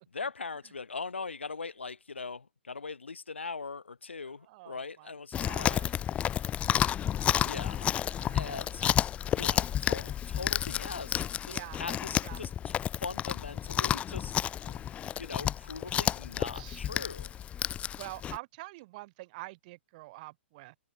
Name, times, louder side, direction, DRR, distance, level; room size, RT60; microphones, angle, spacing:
voice 1, 0.1-5.8 7.4-7.9 8.3-8.8 9.3-12.7 13.0-17.3, left 4 dB, 80° left, 2.1 m, -41 dB
voice 2, 4.2-5.9 8.1-9.1 9.4-9.7 11.5-11.8 12.2-12.4 15.9-16.2 16.5-17.1 18.0-20.8, right 21 dB, 45° right, 3.6 m, -47 dB
Chewing mastication, 5.3-18.4, left 10 dB, 20° left, 0.8 m, -31 dB
figure-of-eight pair, 115°, 6 cm